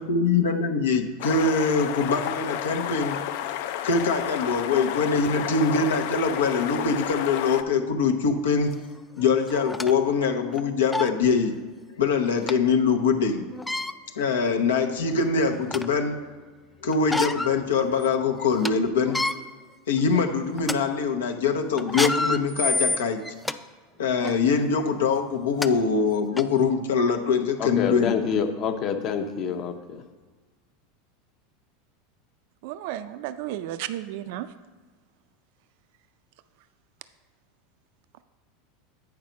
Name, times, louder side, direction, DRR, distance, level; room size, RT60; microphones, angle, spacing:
voice 1, 0.0-3.2 3.8-8.7 9.2-11.5 12.0-13.4 14.2-16.2 16.8-19.2 19.9-23.2 24.0-28.2, left 5 dB, 90° left, 4 dB, 0.9 m, -23 dB
sound 1, 1.2-7.6, left 11 dB, 65° left, 0.5 m, -31 dB
sound 2, 8.7-8.8 9.5-9.9 10.5-10.6 10.9-11.1 12.5-12.6 13.5-13.9 14.7-14.8 15.3-16.0 16.9-17.5 18.0-18.1 18.4-18.7 19.0-19.3 20.0-20.2 20.6-20.8 21.8-23.6 24.2-24.4 25.2-25.3 25.6-25.7 26.4-26.5, left 2 dB, 5° left, 0.4 m, -28 dB
voice 2, 27.6-29.7, left 7 dB, 45° left, 7 dB, 0.8 m, -27 dB
voice 3, 32.6-34.5, right 13 dB, 65° right, 12 dB, 0.4 m, -33 dB
8.7 x 4.7 x 5.1 m, 1.4 s
hypercardioid pair, 105°, 0 cm